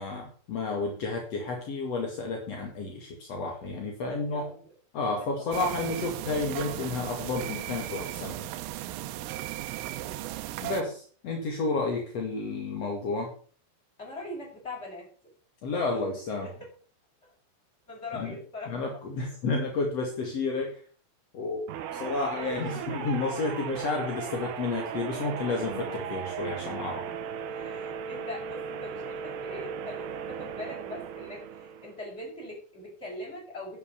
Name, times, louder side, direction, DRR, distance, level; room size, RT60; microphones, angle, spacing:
voice 1, 0.0-4.4 4.9-8.5 10.6-13.3 15.6-16.5 18.1-18.4 18.7-20.8 21.3-27.0, left 3 dB, 45° left, 1 dB, 2.2 m, -31 dB
voice 2, 4.1-4.7 5.4-5.8 9.9-10.2 14.0-15.1 17.9-18.8 27.5-33.8, left 1 dB, 10° left, -4 dB, 7.5 m, -41 dB
sound 1, 5.5-10.8, right 14 dB, 85° right, 3.5 m, -36 dB
sound 2, 21.7-32.0, right 7 dB, 65° right, 2.8 m, -37 dB
11.0 x 9.6 x 7.0 m, 0.43 s
omnidirectional pair, 5.8 m